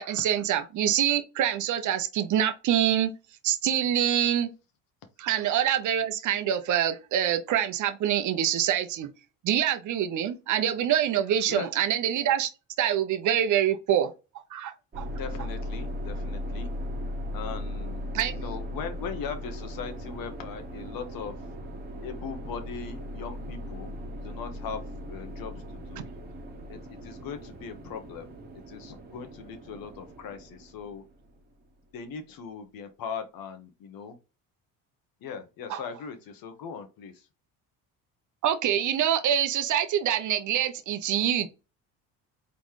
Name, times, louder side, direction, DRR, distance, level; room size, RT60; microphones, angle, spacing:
voice 1, 0.0-3.1 3.4-4.5 5.2-9.1 9.4-12.5 12.8-14.1 14.5-15.1 18.1-18.3 35.7-35.8 38.4-41.5, right 10 dB, 50° right, 0.8 m, -25 dB
sound 1, 14.9-31.4, equal, 25° right, 1.2 m, -38 dB
voice 2, 15.2-16.7 17.3-21.4 22.0-23.9 24.2-24.8 25.1-26.1 26.7-28.3 28.7-31.0 31.9-34.2 35.2-37.1, left 6 dB, 65° left, 1.2 m, -39 dB
4.1 x 3.8 x 3.2 m
cardioid pair, 115°, 38 cm